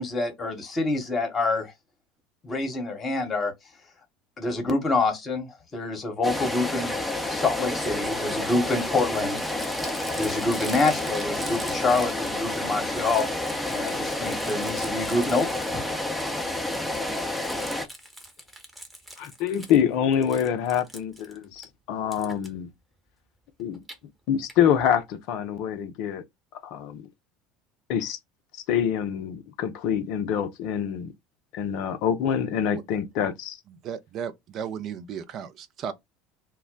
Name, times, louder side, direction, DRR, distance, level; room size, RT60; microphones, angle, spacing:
voice 1, 0.0-1.7 2.4-3.5 4.4-7.0 7.3-9.4 10.1-13.2 13.7-15.8, left 3 dB, 30° left, 1.0 m, -26 dB
sound 1, 6.2-17.8, left 1 dB, 5° left, 0.6 m, -29 dB
Crumpling crinkling, 7.7-12.6 12.8-15.9 16.2-19.8 20.1-21.7 22.1-22.5 23.6-24.0 24.5-24.6 24.8-24.9 25.1-25.2, right 1 dB, 15° right, 0.9 m, -43 dB
voice 2, 19.2-22.7 23.6-23.8 24.3-26.2 26.5-27.1 27.9-28.2 28.5-31.1 31.5-33.6, left 9 dB, 55° left, 0.5 m, -26 dB
voice 3, 33.8-35.9, right 8 dB, 45° right, 0.5 m, -35 dB
2.2 x 2.0 x 3.7 m
figure-of-eight pair, 70°, 0 cm